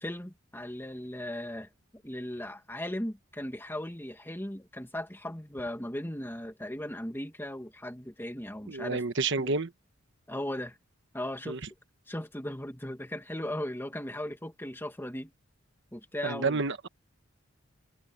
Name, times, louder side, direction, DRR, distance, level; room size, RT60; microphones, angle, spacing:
voice 1, 0.0-9.0 9.4-9.5 10.3-10.8 11.1-11.6 12.1-15.3 15.9-16.6, left 1 dB, 10° left, 1.9 m, -37 dB
voice 2, 8.7-9.7 11.5-11.6 16.2-16.9, right 3 dB, 60° right, 1.2 m, -29 dB
open air
head